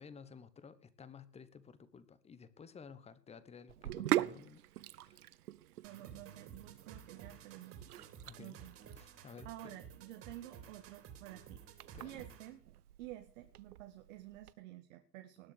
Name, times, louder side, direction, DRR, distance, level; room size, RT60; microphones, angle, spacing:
voice 1, 0.0-4.6 5.0-5.2 8.2-8.6 9.0-9.8 11.9-12.2, left 6 dB, 15° left, 16 dB, 1.2 m, -54 dB
Sink (filling or washing), 3.7-14.5, right 14 dB, 65° right, 0.9 m, -42 dB
sound 1, 5.8-12.6, right 8 dB, 30° right, 3.3 m, -54 dB
voice 2, 5.8-7.8 8.4-8.7 9.4-12.6 13.0-15.5, right 14 dB, 50° right, 7 dB, 1.8 m, -51 dB
19.5 x 7.5 x 6.7 m, 0.39 s
hypercardioid pair, 115°, 48 cm